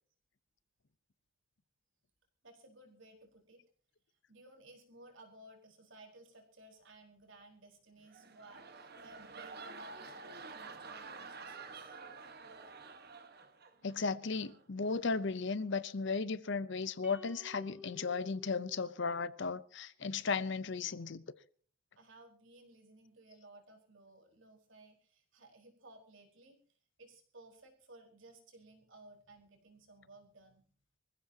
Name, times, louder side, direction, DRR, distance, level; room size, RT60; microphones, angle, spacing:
voice 1, 2.4-3.6 4.1-12.0 22.0-30.7, right 2 dB, 60° right, 4.4 m, -58 dB
sound 1, 8.0-14.0 14.3-14.6, right 4 dB, 45° right, 1.4 m, -49 dB
voice 2, 13.8-21.2, left 4 dB, 55° left, 0.7 m, -35 dB
sound 2, 17.0-19.5, left 2 dB, 5° right, 1.9 m, -54 dB
25.0 x 15.5 x 2.9 m
head